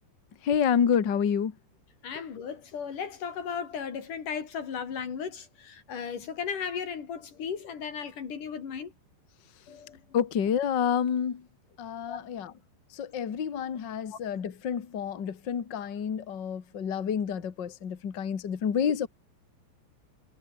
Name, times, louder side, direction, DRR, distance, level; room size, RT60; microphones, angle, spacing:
voice 1, 0.4-1.5 10.1-11.4 11.8-12.5 13.0-19.1, left 7 dB, 90° left, 0.9 m, -28 dB
voice 2, 2.0-8.9 9.7-10.0 12.1-12.2 14.1-14.2, left 7 dB, 45° left, 4.5 m, -36 dB
omnidirectional pair, 5.3 m